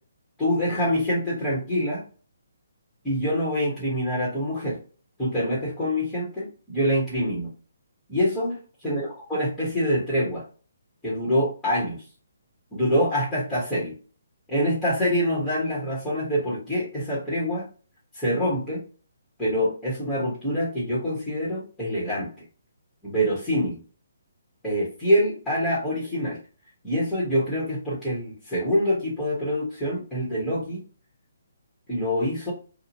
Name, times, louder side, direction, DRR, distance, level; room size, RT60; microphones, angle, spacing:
voice 1, 0.4-2.0 3.0-4.8 5.2-7.5 8.1-9.0 9.3-10.4 11.0-12.0 12.7-13.9 14.5-17.7 18.1-18.8 19.4-22.3 23.0-23.8 24.6-26.4 26.8-30.8 31.9-32.5, equal, 5° left, -8 dB, 1.3 m, -25 dB
2.8 x 2.4 x 2.7 m, 0.39 s
hypercardioid pair, 145°, 0 cm